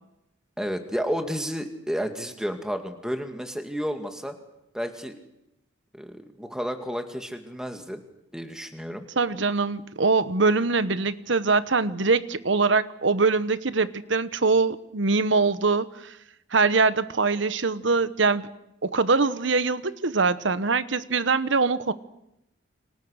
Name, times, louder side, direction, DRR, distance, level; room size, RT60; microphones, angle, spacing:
voice 1, 0.6-4.4 4.7-5.2 5.9-8.0 8.3-9.1, equal, 5° right, 5 dB, 2.2 m, -31 dB
voice 2, 9.2-16.1 16.5-18.5 18.8-21.9, right 4 dB, 70° right, 14 dB, 1.1 m, -23 dB
30.0 x 25.5 x 6.6 m, 0.86 s
head